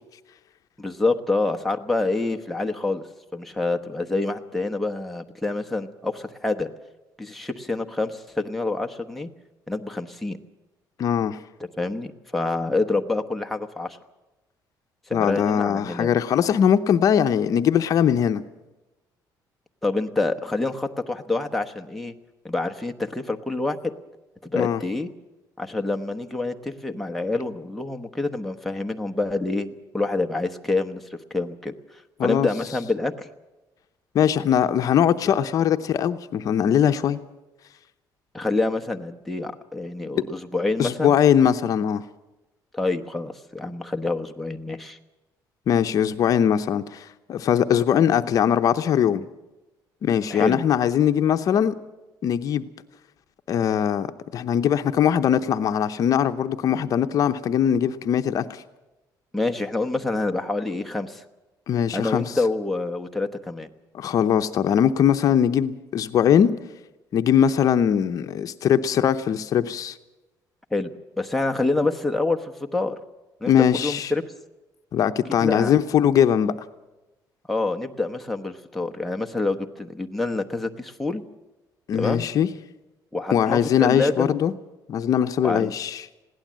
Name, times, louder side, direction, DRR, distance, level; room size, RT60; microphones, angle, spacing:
voice 1, 0.8-3.0 3.3-6.7 7.2-9.3 9.7-10.4 11.8-14.0 15.1-16.1 19.8-22.1 22.4-23.9 24.4-25.1 25.6-31.7 32.2-33.3 38.3-41.1 42.7-45.0 50.3-50.6 59.3-61.2 61.9-63.7 70.7-73.0 73.4-74.2 75.4-75.7 77.5-81.2 81.9-82.3 83.1-84.3 85.4-85.7, left 2 dB, ahead, 1.0 m, -27 dB
voice 2, 11.0-11.4 15.1-18.4 24.5-24.8 32.2-32.5 34.1-37.2 40.8-42.0 45.7-49.3 50.0-51.7 52.2-52.7 53.5-54.1 54.3-58.6 61.7-62.2 63.9-66.5 67.1-70.0 73.5-74.1 74.9-76.5 81.9-82.5 83.3-84.5 84.9-86.0, left 9 dB, 50° left, 0.8 m, -21 dB
21.0 x 16.5 x 7.5 m
cardioid pair, 150°, 8 cm